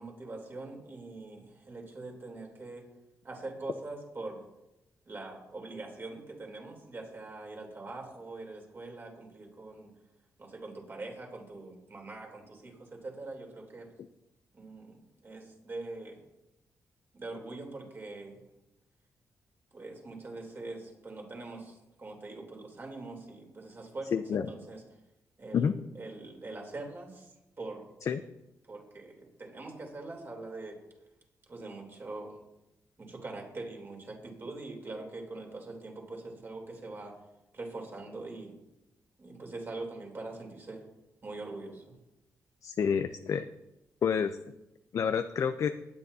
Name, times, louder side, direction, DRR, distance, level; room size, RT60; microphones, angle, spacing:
voice 1, 0.0-2.9 3.2-4.5 5.0-9.9 10.4-13.9 14.5-15.0 15.2-16.2 17.1-18.4 19.7-24.8 25.4-27.9 28.6-30.8 31.5-32.4 33.0-37.2 37.5-38.6 39.2-40.8 41.2-41.9, right 2 dB, 35° right, 0 dB, 3.3 m, -43 dB
voice 2, 24.1-24.5 25.5-25.8 28.1-28.2 42.6-43.5 44.0-44.4 44.9-45.7, left 7 dB, 60° left, 9 dB, 0.5 m, -28 dB
17.5 x 9.3 x 2.7 m, 0.92 s
cardioid pair, 100°, 6 cm